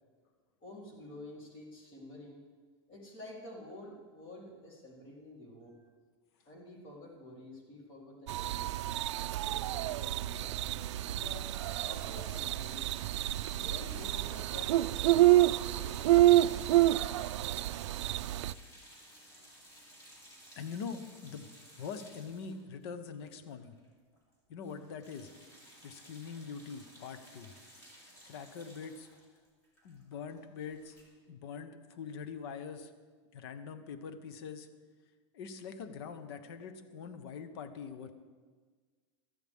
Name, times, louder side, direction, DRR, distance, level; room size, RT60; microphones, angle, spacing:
voice 1, 0.6-2.4 2.9-5.8 6.5-8.8 9.4-11.5 11.9-12.8 13.6-16.8, left 1 dB, 35° left, -2 dB, 3.7 m, -50 dB
sound 1, 8.3-18.5, right 15 dB, 90° right, 0.4 m, -28 dB
sound 2, 11.5-23.9 24.1-24.3 24.6-31.0, equal, 20° left, 3.7 m, -56 dB
voice 2, 20.6-21.5 21.8-23.8 24.5-25.3 25.8-27.5 28.2-29.1 29.8-31.0 31.3-32.9 33.3-34.7 35.3-38.1, left 6 dB, 60° left, 10 dB, 1.1 m, -43 dB
18.0 x 13.0 x 3.6 m, 1.5 s
supercardioid pair, 160°, 15 cm